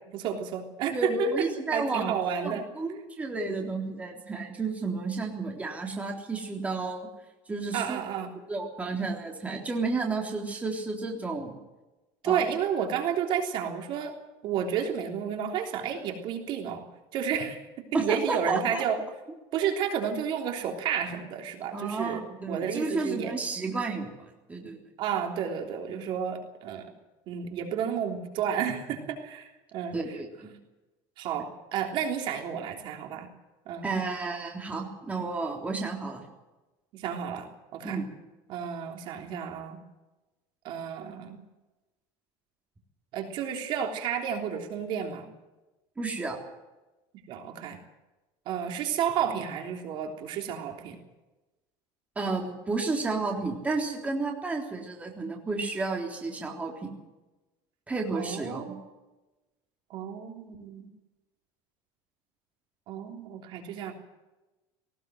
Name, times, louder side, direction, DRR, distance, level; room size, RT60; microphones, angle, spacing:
voice 1, 0.0-1.3 1.7-2.6 7.7-8.3 12.2-14.1 14.4-16.8 17.1-19.0 19.5-23.3 25.0-26.9 27.3-30.2 31.2-33.3 33.7-33.9 36.9-38.0 38.5-39.8 40.6-41.4 43.1-45.3 47.3-47.8 48.5-51.0 58.1-58.8 59.9-60.9 62.9-63.9, right 8 dB, 55° right, 3 dB, 3.4 m, -31 dB
voice 2, 0.9-2.2 2.4-7.1 7.5-8.0 8.5-11.6 12.2-12.4 17.9-18.8 21.7-24.1 24.5-24.8 29.9-30.5 33.8-36.2 37.8-38.1 46.0-46.4 52.2-56.9 57.9-58.8, right 3 dB, 15° right, 0 dB, 3.6 m, -31 dB
19.0 x 18.5 x 7.8 m, 1.1 s
cardioid pair, 150°, 10 cm